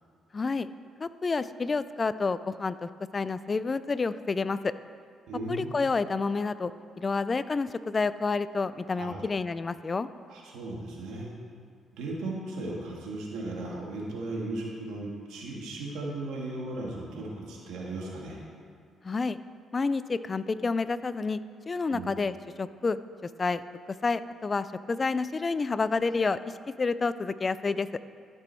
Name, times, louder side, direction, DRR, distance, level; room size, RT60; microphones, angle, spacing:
voice 1, 0.3-0.7 1.0-4.7 5.5-6.7 7.0-10.1 19.0-19.4 19.7-21.4 21.7-23.6 24.0-27.9, left 4 dB, 30° left, 14 dB, 0.3 m, -29 dB
voice 2, 5.3-5.7 8.9-9.2 10.3-11.3 11.9-18.4 21.9-22.1, right 2 dB, 90° right, -3 dB, 1.7 m, -36 dB
13.0 x 6.1 x 4.5 m, 2.4 s
cardioid pair, 90°, 0 cm